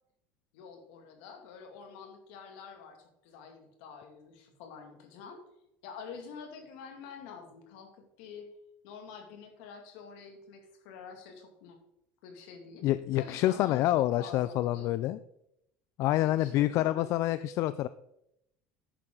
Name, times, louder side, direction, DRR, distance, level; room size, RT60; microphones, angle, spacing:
voice 1, 0.5-5.4 5.8-8.5 8.8-11.8 12.2-12.9 13.1-14.9 16.2-17.1, left 6 dB, 80° left, 4 dB, 2.3 m, -47 dB
voice 2, 12.8-15.2 16.0-17.9, left 14 dB, 60° left, 15 dB, 0.4 m, -27 dB
10.5 x 8.8 x 3.9 m, 0.80 s
supercardioid pair, 110°, 6 cm